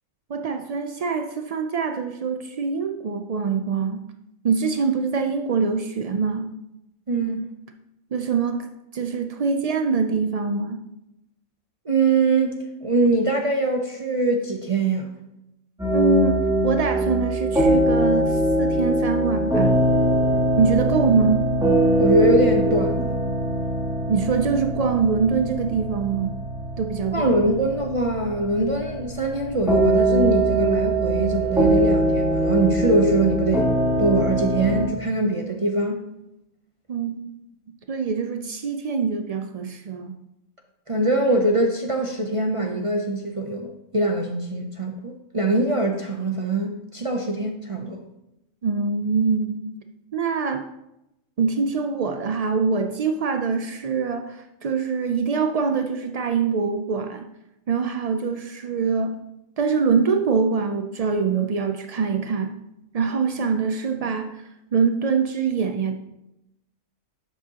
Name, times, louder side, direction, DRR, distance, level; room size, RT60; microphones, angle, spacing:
voice 1, 0.3-4.0 4.4-6.5 8.1-8.7 8.9-10.8 15.9-19.8 20.6-21.4 24.1-26.4 26.8-27.3 36.9-37.3 37.9-40.1 48.6-49.6 50.1-50.6 51.4-57.3 57.7-59.2 59.6-62.5 62.9-64.4 64.7-66.0, right 5 dB, 85° right, 6 dB, 0.3 m, -24 dB
voice 2, 7.1-7.4 11.9-15.1 22.0-23.2 27.1-33.7 34.0-36.0 40.9-48.0, right 2 dB, 35° right, 2 dB, 0.5 m, -23 dB
sound 1, 15.8-34.9, right 1 dB, 5° right, 2.7 m, -22 dB
10.5 x 7.3 x 2.9 m, 0.89 s
omnidirectional pair, 1.3 m